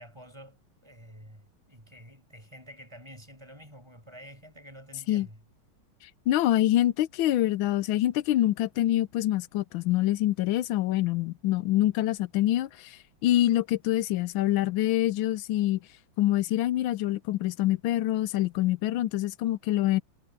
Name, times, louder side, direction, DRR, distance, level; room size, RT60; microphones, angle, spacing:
voice 1, 0.0-5.4, equal, 10° right, 7.0 m, -49 dB
voice 2, 6.3-15.8 16.2-20.0, left 14 dB, 75° left, 1.4 m, -25 dB
omnidirectional pair, 2.2 m